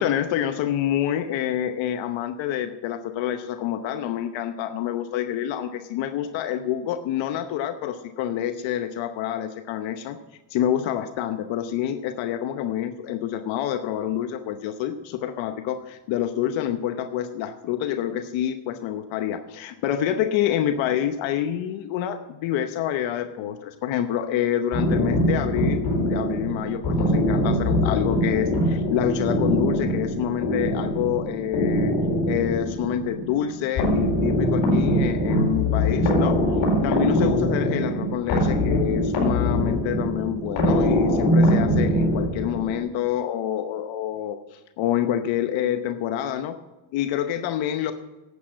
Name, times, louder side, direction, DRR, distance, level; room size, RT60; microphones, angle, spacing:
voice 1, 0.0-10.2 10.5-31.9 32.3-36.4 36.8-46.6 46.9-47.9, left 10 dB, 80° left, 8 dB, 0.9 m, -27 dB
sound 1, 24.7-42.8, equal, 55° left, 4.5 m, -23 dB
11.0 x 8.3 x 7.4 m, 1.1 s
cardioid pair, 95°, 45 cm